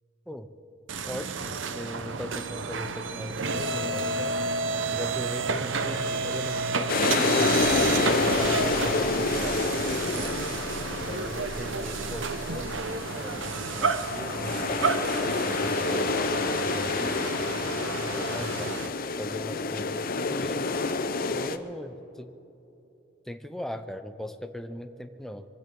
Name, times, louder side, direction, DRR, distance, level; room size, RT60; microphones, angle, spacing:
sound 1, 0.9-18.9, right 4 dB, 70° right, 0.8 m, -31 dB
voice 1, 1.0-4.4 4.9-7.7 8.2-10.4 11.1-14.9 15.5-18.8 19.2-20.7 21.3-22.3 23.3-25.5, equal, ahead, 8 dB, 0.5 m, -39 dB
sound 2, 6.9-21.6, left 4 dB, 45° left, 0.6 m, -28 dB
24.5 x 15.5 x 3.8 m, 3.0 s
head